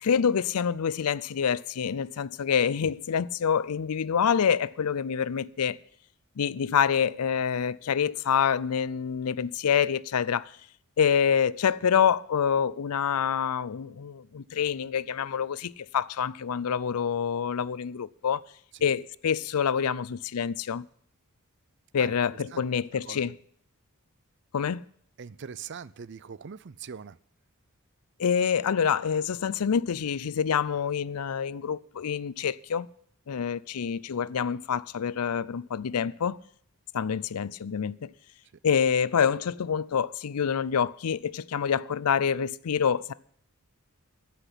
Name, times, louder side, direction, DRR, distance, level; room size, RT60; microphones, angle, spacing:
voice 1, 0.0-5.8 6.4-10.5 11.0-18.4 18.8-20.9 21.9-23.3 24.5-24.8 28.2-32.9 33.3-36.4 36.9-38.1 38.6-43.1, left 7 dB, 80° left, 0.5 m, -27 dB
voice 2, 25.2-27.2, right 6 dB, 50° right, 0.5 m, -42 dB
15.0 x 5.9 x 9.9 m
head